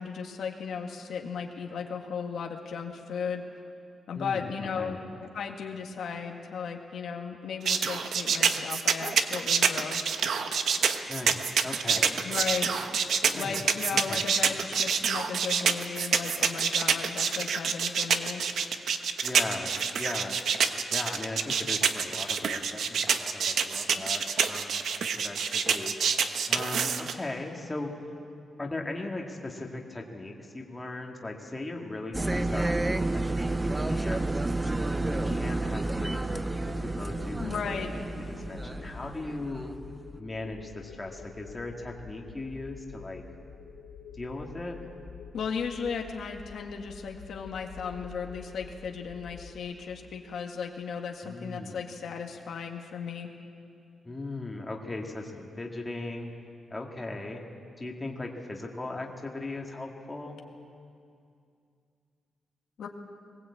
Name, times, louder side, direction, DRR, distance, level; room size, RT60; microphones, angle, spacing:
voice 1, 0.0-3.4 4.1-10.0 12.2-12.7 13.3-18.4 37.4-37.9 45.3-53.3 62.8-62.9, left 6 dB, 70° left, 2 dB, 1.9 m, -35 dB
voice 2, 4.1-5.0 11.1-12.2 13.3-13.6 14.1-14.3 19.2-20.4 20.9-24.8 25.1-26.0 26.5-27.9 28.6-34.4 35.1-39.7 40.2-43.2 44.1-44.8 51.2-51.8 54.0-56.3 56.7-57.4 57.8-60.4, left 2 dB, 15° left, 0 dB, 1.9 m, -38 dB
sound 1, 7.6-27.1, right 6 dB, 65° right, 1.1 m, -26 dB
sound 2, 32.1-39.9, right 2 dB, 10° right, 0.5 m, -30 dB
sound 3, 34.8-49.5, left 5 dB, 85° left, 2.4 m, -47 dB
21.0 x 20.0 x 8.5 m, 2.4 s
wide cardioid pair, 165°, 0 cm